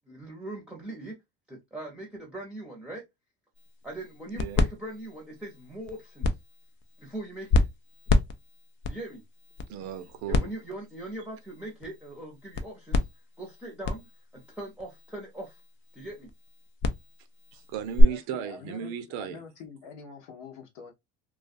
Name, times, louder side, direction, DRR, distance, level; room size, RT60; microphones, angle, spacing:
voice 1, 0.1-1.1 1.5-3.0 3.8-6.3 7.0-7.6 8.9-9.2 10.3-13.0 13.4-15.6 15.9-16.3, right 2 dB, 5° right, 0.8 m, -40 dB
sound 1, 3.6-18.0, left 2 dB, 35° left, 0.5 m, -30 dB
voice 2, 4.3-4.6 9.7-10.5 17.5-19.4, right 9 dB, 60° right, 0.6 m, -36 dB
voice 3, 18.0-18.9 19.2-20.9, left 6 dB, 65° left, 0.8 m, -45 dB
2.3 x 2.3 x 2.5 m
supercardioid pair, 100°, 34 cm